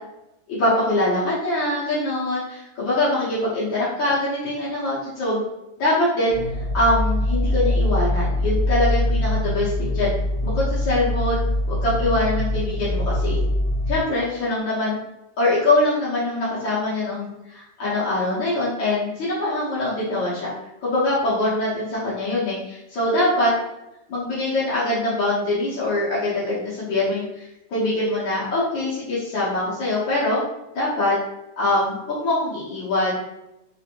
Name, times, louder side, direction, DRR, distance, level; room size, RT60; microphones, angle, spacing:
voice 1, 0.5-5.4 5.8-6.4 6.7-10.1 10.4-13.4 13.9-15.0 15.4-20.5 20.8-23.5 24.1-30.4 30.7-31.2 31.6-33.2, left 1 dB, 85° left, -9 dB, 1.8 m, -23 dB
sound 1, 6.3-14.0, left 1 dB, 85° right, 0.5 m, -23 dB
4.2 x 2.8 x 2.5 m, 0.91 s
omnidirectional pair, 2.0 m